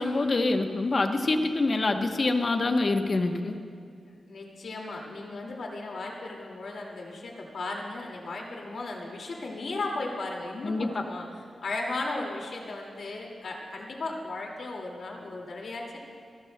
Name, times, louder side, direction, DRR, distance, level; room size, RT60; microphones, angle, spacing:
voice 1, 0.0-3.5 10.6-11.0, left 2 dB, 45° left, 5 dB, 0.9 m, -26 dB
voice 2, 4.3-16.0, left 2 dB, 70° left, 0 dB, 2.1 m, -36 dB
28.5 x 13.0 x 2.2 m, 2.2 s
wide cardioid pair, 95°, 0 cm